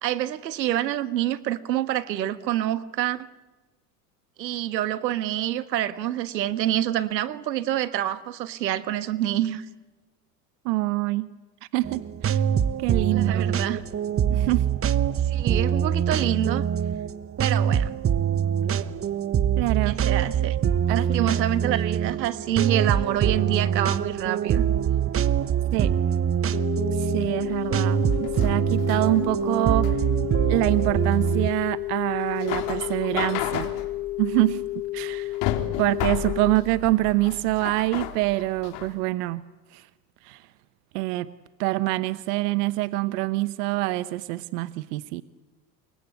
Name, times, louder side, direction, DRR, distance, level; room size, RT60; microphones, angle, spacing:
voice 1, 0.0-3.3 4.4-9.6 13.1-13.8 15.2-16.6 17.4-18.0 19.8-20.6 20.9-24.6, right 12 dB, 90° right, 13 dB, 1.5 m, -27 dB
voice 2, 10.6-11.3 11.7-12.4 12.8-13.4 14.3-14.7 19.6-20.0 20.9-21.3 25.7-25.9 26.9-30.0 30.5-33.7 34.2-34.6 34.9-35.4 35.8-39.5 39.7-39.9 40.2-40.4 40.9-41.3 41.6-45.2, right 19 dB, 70° right, 15 dB, 1.1 m, -25 dB
sound 1, 11.8-31.5, right 8 dB, 25° right, 1.1 m, -24 dB
sound 2, 26.5-36.5, left 16 dB, 35° left, 1.7 m, -32 dB
sound 3, 27.4-39.0, left 11 dB, 55° left, 3.6 m, -34 dB
28.5 x 24.0 x 8.3 m, 1.2 s
hypercardioid pair, 90°, 49 cm